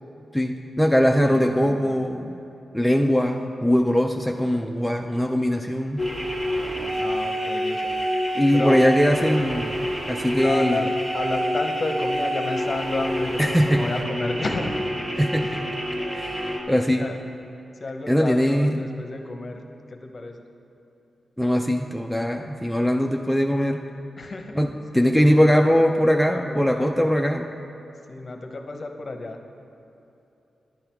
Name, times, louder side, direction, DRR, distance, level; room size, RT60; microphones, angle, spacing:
voice 1, 0.3-2.4 2.7-6.0 8.3-10.8 13.4-13.8 15.2-15.5 16.1-17.1 18.1-18.8 21.4-23.8 24.5-27.5, equal, ahead, 2 dB, 0.4 m, -21 dB
voice 2, 1.2-1.9 7.0-7.9 8.5-8.8 10.4-14.7 15.4-15.5 17.0-17.2 17.8-19.6 19.9-20.4 24.2-24.6 25.0-25.6 26.3-27.1 28.1-29.4, left 2 dB, 35° left, 4 dB, 0.8 m, -31 dB
sound 1, 6.0-16.6, equal, 20° right, 1.4 m, -27 dB
10.5 x 7.9 x 4.5 m, 2.9 s
wide cardioid pair, 115°, 0 cm